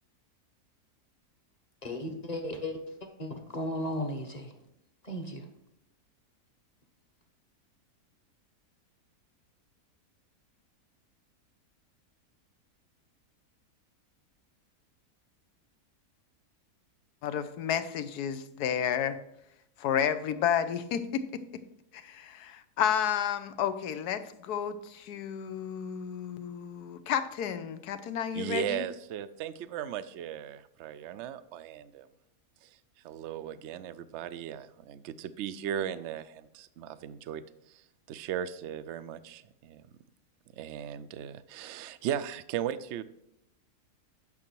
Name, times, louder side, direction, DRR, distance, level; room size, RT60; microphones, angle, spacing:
voice 1, 1.8-2.8 3.2-4.5 5.0-5.4, left 1 dB, 30° left, 5 dB, 1.2 m, -35 dB
voice 2, 17.2-19.2 19.8-21.2 21.9-28.8, left 8 dB, 80° left, 12 dB, 1.3 m, -31 dB
voice 3, 28.3-32.1 32.6-32.7 33.0-37.4 38.1-39.8 40.6-43.0, right 9 dB, 70° right, 14 dB, 0.7 m, -37 dB
9.6 x 6.2 x 4.6 m, 0.83 s
omnidirectional pair, 1.7 m